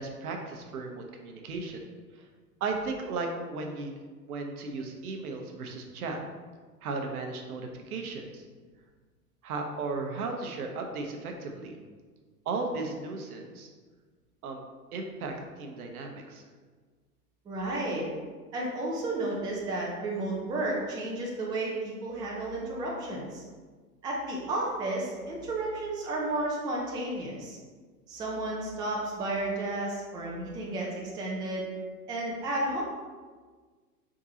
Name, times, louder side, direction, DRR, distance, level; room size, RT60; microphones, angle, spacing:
voice 1, 0.0-1.8 2.2-2.3 2.6-3.9 4.3-6.2 6.8-8.4 9.4-11.8 12.5-13.7 14.4-14.6 14.9-16.4, right 3 dB, 65° right, 3 dB, 0.8 m, -35 dB
voice 2, 17.5-18.1 18.5-23.4 24.0-27.6 28.1-31.7 32.1-32.8, right 2 dB, 10° right, -3 dB, 0.4 m, -32 dB
4.6 x 3.7 x 2.8 m, 1.5 s
hypercardioid pair, 100°, 48 cm